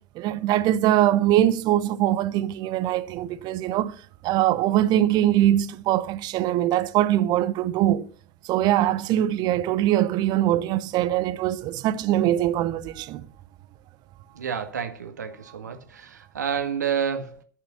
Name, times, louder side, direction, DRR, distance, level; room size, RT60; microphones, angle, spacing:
voice 1, 0.0-4.0 4.2-8.1 8.4-13.3, right 13 dB, 50° right, 0.9 m, -22 dB
voice 2, 14.4-17.4, right 7 dB, 80° right, 1.8 m, -29 dB
11.5 x 5.7 x 6.9 m
figure-of-eight pair, 75°, 9 cm